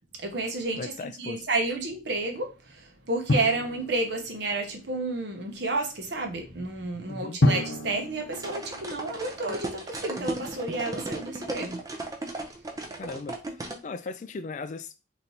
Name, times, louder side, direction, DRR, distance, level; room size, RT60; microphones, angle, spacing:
voice 1, 0.2-11.9, right 2 dB, 60° right, 1.0 m, -31 dB
voice 2, 0.7-1.5 7.1-7.4 13.0-15.1, left 4 dB, 40° left, 0.3 m, -38 dB
Drum, 3.3-4.8 7.4-9.6, left 1 dB, 70° left, 0.7 m, -29 dB
sound 1, 8.3-13.8, right 2 dB, 20° right, 0.6 m, -35 dB
4.0 x 3.2 x 2.8 m
head